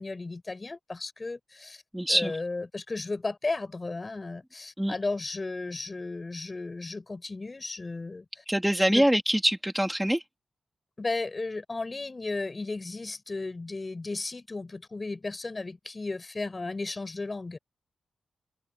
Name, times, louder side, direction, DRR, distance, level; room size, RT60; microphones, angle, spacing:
voice 1, 0.0-1.8 2.1-8.4 8.9-9.1 11.0-17.6, left 3 dB, 25° left, 5.9 m, -34 dB
voice 2, 1.9-2.3 4.8-4.9 8.5-10.2, equal, 5° right, 3.4 m, -24 dB
wide cardioid pair, 120°, 0 cm